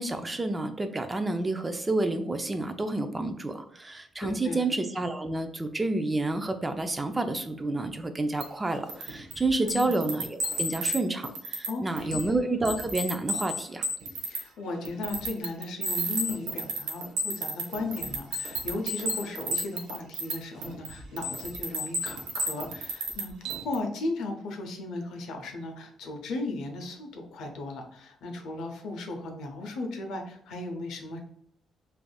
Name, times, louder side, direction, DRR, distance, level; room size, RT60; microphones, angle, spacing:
voice 1, 0.0-13.9, right 2 dB, 20° right, 8 dB, 0.3 m, -29 dB
voice 2, 4.2-4.7 9.6-9.9 11.7-12.2 14.3-23.3 23.6-31.2, left 2 dB, 80° left, 3 dB, 0.6 m, -36 dB
sound 1, 8.4-8.5 8.9-11.0 11.2-11.7 12.0-12.4 12.6-14.4 14.8-20.4 20.6-23.7, right 1 dB, 85° right, 0.5 m, -32 dB
3.3 x 2.5 x 2.3 m, 0.68 s
cardioid pair, 90°, 0 cm